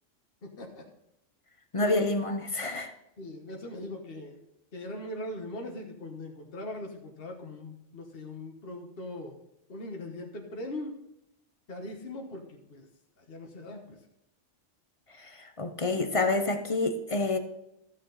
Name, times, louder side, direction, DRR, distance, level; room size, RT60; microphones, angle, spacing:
voice 1, 0.4-0.8 1.8-2.1 3.2-4.4 4.7-9.3 9.7-10.9 11.7-12.9 13.2-14.0, left 1 dB, 50° left, 1 dB, 1.5 m, -40 dB
voice 2, 1.7-2.9 15.2-17.4, left 2 dB, 30° left, 8 dB, 0.7 m, -28 dB
13.5 x 6.7 x 4.0 m, 0.83 s
omnidirectional pair, 1.3 m